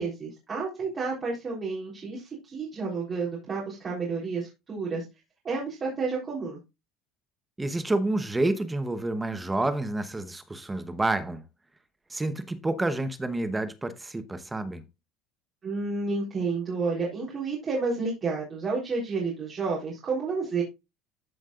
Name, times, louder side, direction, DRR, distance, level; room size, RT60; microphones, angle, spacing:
voice 1, 0.0-5.0 5.4-6.6 15.6-20.6, right 4 dB, 30° right, 3.8 m, -30 dB
voice 2, 7.6-11.4 12.1-14.8, right 2 dB, 10° right, 0.9 m, -29 dB
14.0 x 5.3 x 2.5 m
cardioid pair, 140°, 0 cm